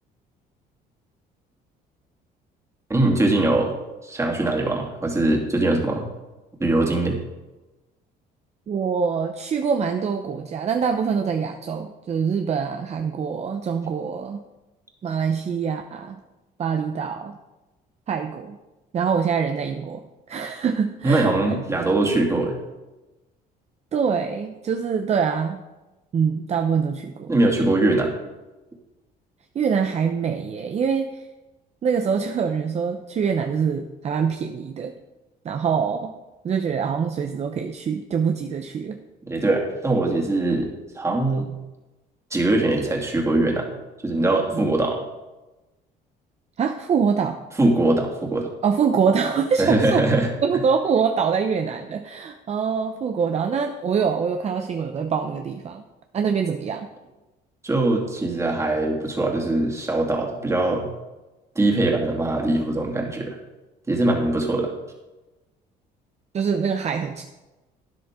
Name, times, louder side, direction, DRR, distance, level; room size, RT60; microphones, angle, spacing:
voice 1, 2.9-3.7 4.0-6.1 6.6-7.2 21.0-22.6 27.3-28.1 39.3-41.5 42.3-43.7 44.0-45.0 47.6-48.5 49.6-50.3 57.6-60.9 61.5-63.4 63.9-64.7, right 2 dB, 15° right, 0 dB, 2.5 m, -22 dB
voice 2, 8.7-14.4 15.0-16.2 16.6-17.4 18.1-18.6 18.9-20.0 20.3-21.4 23.9-25.6 26.1-27.3 29.5-31.3 31.8-34.9 35.4-36.1 36.4-39.0 44.5-44.7 46.6-47.4 48.6-50.1 50.4-55.8 56.1-56.9 66.3-67.2, right 6 dB, 40° right, 6 dB, 0.7 m, -24 dB
12.0 x 10.0 x 3.7 m, 1.1 s
cardioid pair, 110°, 17 cm